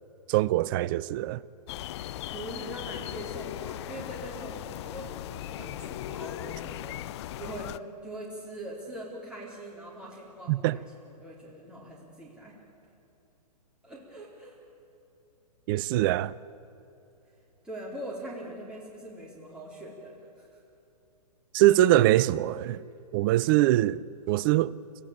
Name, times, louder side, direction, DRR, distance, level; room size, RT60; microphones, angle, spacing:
voice 1, 0.3-1.4 10.5-10.8 15.7-16.3 21.5-22.8 23.1-24.7, right 15 dB, 35° right, 0.5 m, -23 dB
sound 1, 1.7-7.8, left 13 dB, 40° left, 0.6 m, -38 dB
voice 2, 2.3-12.5 13.8-14.6 17.6-20.6, right 1 dB, 5° right, 4.2 m, -42 dB
25.5 x 15.5 x 8.7 m
hypercardioid pair, 120°, 21 cm